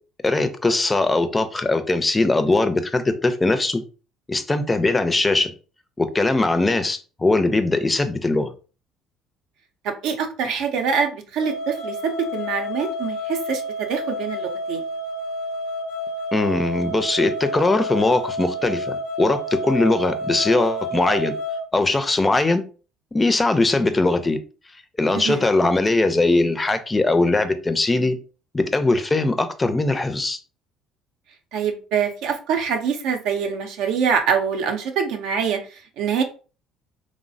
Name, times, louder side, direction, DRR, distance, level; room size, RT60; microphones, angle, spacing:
voice 1, 0.2-3.8 4.3-5.5 6.0-8.5 16.3-21.3 21.7-22.6 23.1-24.4 25.0-28.1 28.5-30.4, left 2 dB, 20° left, 0.4 m, -20 dB
voice 2, 9.8-14.8 25.1-25.5 31.5-36.2, right 6 dB, 75° right, 0.5 m, -24 dB
sound 1, 11.4-21.6, equal, 80° left, 0.6 m, -30 dB
3.1 x 2.0 x 2.6 m
supercardioid pair, 95°, 0 cm